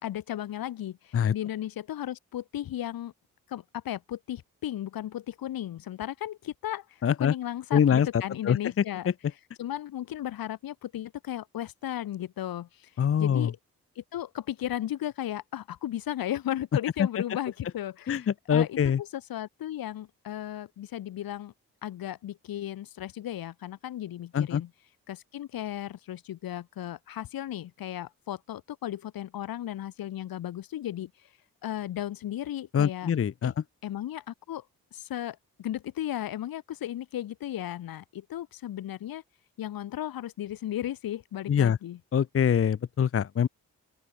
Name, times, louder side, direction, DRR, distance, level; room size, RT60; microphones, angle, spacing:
voice 1, 0.0-3.1 3.5-9.1 9.6-12.9 13.2-13.6 14.0-21.5 21.8-24.7 25.1-31.1 31.6-33.1 33.4-33.5 33.8-34.6 34.9-39.2 39.6-42.0, left 12 dB, 80° left, 4.1 m, -35 dB
voice 2, 7.0-7.3 7.7-8.6 13.0-13.5 18.1-19.0 24.3-24.6 32.7-33.5 41.5-41.8 42.1-43.5, left 8 dB, 40° left, 0.7 m, -24 dB
open air
supercardioid pair, 50°, 35 cm